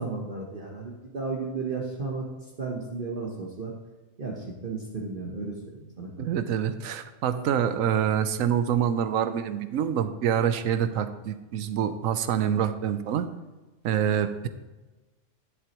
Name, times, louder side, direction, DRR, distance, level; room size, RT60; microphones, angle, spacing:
voice 1, 0.0-2.3 2.6-3.7 4.2-6.3, right 4 dB, 45° right, -2 dB, 1.2 m, -34 dB
voice 2, 6.2-13.3 13.8-14.5, right 9 dB, 85° right, 11 dB, 1.0 m, -26 dB
11.0 x 7.6 x 3.0 m, 1.1 s
omnidirectional pair, 1.4 m